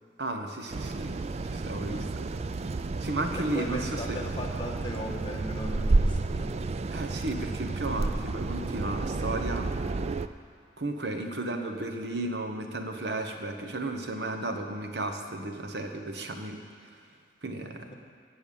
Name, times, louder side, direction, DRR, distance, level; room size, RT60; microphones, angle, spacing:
voice 1, 0.2-2.4 3.0-4.2 6.9-9.7 10.8-17.0 17.4-17.9, right 2 dB, 65° right, 5 dB, 1.2 m, -34 dB
sound 1, 0.7-10.3, right 3 dB, 40° right, 0.4 m, -31 dB
voice 2, 1.8-2.2 3.4-6.6 17.6-17.9, left 1 dB, 25° left, -1 dB, 1.7 m, -38 dB
16.0 x 7.0 x 8.7 m, 2.3 s
head